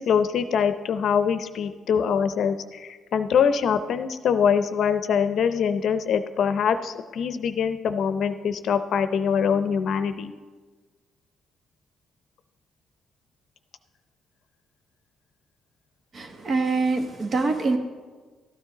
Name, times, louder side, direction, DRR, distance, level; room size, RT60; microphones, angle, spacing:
voice 1, 0.0-10.3, left 7 dB, 65° left, 10 dB, 0.6 m, -24 dB
voice 2, 16.1-17.8, right 3 dB, 45° right, 5 dB, 1.3 m, -24 dB
13.0 x 9.7 x 3.9 m, 1.4 s
cardioid pair, 90°, 0 cm